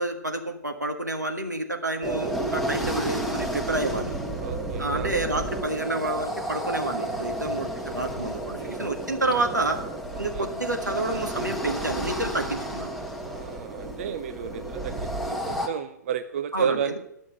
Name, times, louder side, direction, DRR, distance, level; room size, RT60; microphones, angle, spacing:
voice 1, 0.0-4.1 4.8-9.8 10.2-12.9 16.5-17.0, right 2 dB, 85° right, 4 dB, 1.7 m, -29 dB
sound 1, 2.0-15.7, right 1 dB, ahead, 1.1 m, -31 dB
voice 2, 4.4-5.1 8.6-8.8 10.1-10.5 13.2-17.0, right 8 dB, 45° right, 12 dB, 0.5 m, -33 dB
11.0 x 6.3 x 8.8 m, 0.75 s
figure-of-eight pair, 115°, 9 cm